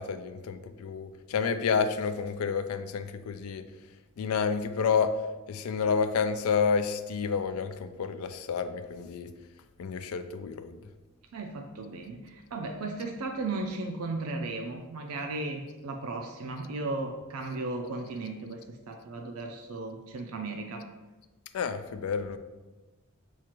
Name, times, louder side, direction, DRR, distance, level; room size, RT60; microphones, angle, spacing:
voice 1, 0.0-3.6 4.2-5.2 5.5-9.3 9.8-10.8 21.5-22.4, left 6 dB, 80° left, 10 dB, 0.3 m, -29 dB
voice 2, 11.3-20.9, right 2 dB, 85° right, 4 dB, 0.4 m, -36 dB
7.2 x 2.4 x 2.9 m, 1.2 s
head